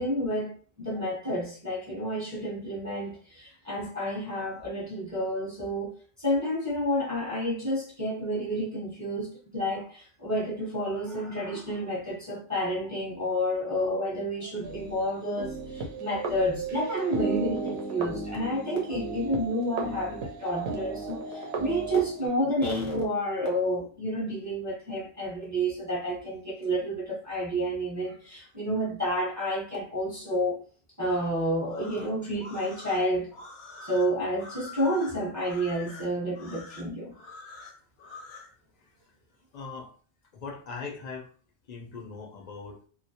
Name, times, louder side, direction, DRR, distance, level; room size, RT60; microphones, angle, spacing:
voice 1, 0.0-30.6 31.0-33.3 33.8-37.1, equal, 20° right, 0.6 m, -30 dB
sound 1, 14.6-22.3, right 4 dB, 75° right, 0.8 m, -35 dB
sound 2, 31.6-38.5, left 2 dB, 85° left, 0.9 m, -45 dB
voice 2, 39.5-39.9 40.3-41.3 41.7-42.8, left 4 dB, 55° left, 0.5 m, -40 dB
2.2 x 2.1 x 2.7 m
omnidirectional pair, 1.1 m